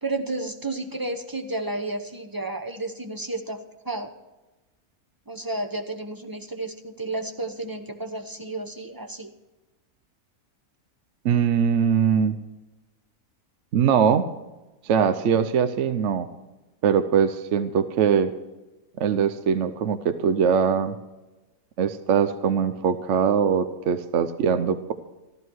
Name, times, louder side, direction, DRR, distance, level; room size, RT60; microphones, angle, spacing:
voice 1, 0.0-4.1 5.3-9.3, right 2 dB, 20° right, 5 dB, 0.8 m, -32 dB
voice 2, 11.2-12.4 13.7-14.2 14.8-16.3 16.8-18.3 19.0-21.0 21.8-24.9, right 7 dB, 60° right, 11 dB, 0.9 m, -22 dB
15.0 x 12.5 x 4.6 m, 1.1 s
omnidirectional pair, 1.6 m